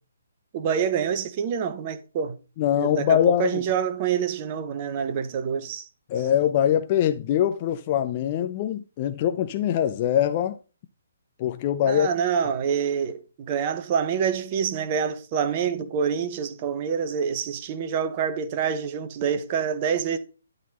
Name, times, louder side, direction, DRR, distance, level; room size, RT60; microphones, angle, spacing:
voice 1, 0.5-2.4 2.7-5.9 11.9-20.2, right 7 dB, 30° right, 1.2 m, -26 dB
voice 2, 2.6-3.6 6.1-10.6 11.4-12.1, left 10 dB, 30° left, 0.6 m, -23 dB
12.0 x 4.1 x 5.4 m
figure-of-eight pair, 135°, 0 cm